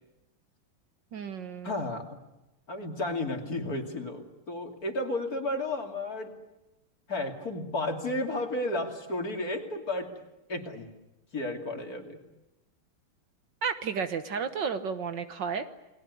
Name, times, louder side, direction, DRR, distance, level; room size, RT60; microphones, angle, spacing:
voice 1, 1.1-1.8 13.6-15.6, right 6 dB, 60° right, 10 dB, 1.7 m, -32 dB
voice 2, 1.6-2.2 2.7-6.3 7.1-10.1 10.5-10.9 11.3-12.2, left 2 dB, 40° left, 4 dB, 3.1 m, -32 dB
29.5 x 20.5 x 9.6 m, 0.98 s
omnidirectional pair, 2.4 m